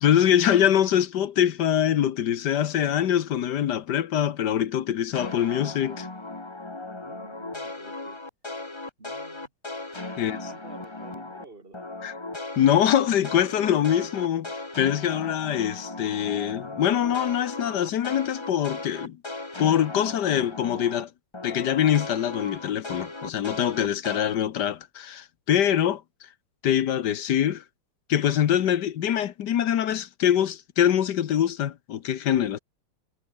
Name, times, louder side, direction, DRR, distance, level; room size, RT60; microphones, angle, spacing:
voice 1, 0.0-6.1 10.2-10.4 12.0-12.1 12.6-14.5 14.8-19.2 19.6-21.1 21.4-26.0 26.6-27.6 28.1-32.6, left 10 dB, 60° left, 1.4 m, -24 dB
sound 1, 5.1-11.4 11.7-21.0 21.3-24.3, left 2 dB, 15° left, 1.4 m, -37 dB
voice 2, 6.9-8.2 9.0-9.5 9.9-11.9, right 3 dB, 25° right, 3.0 m, -49 dB
omnidirectional pair, 2.3 m